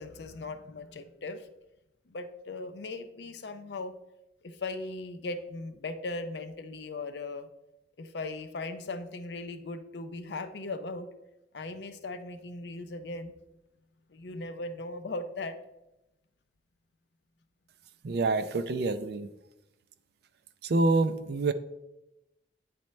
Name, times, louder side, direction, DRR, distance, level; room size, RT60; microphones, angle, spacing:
voice 1, 0.0-1.5 2.1-3.9 4.4-7.5 8.0-11.1 11.5-13.4 14.1-15.6, left 2 dB, 65° left, 9 dB, 0.6 m, -38 dB
voice 2, 18.0-19.3 20.6-21.5, right 3 dB, 60° right, 12 dB, 0.4 m, -27 dB
9.1 x 4.3 x 3.2 m, 0.93 s
head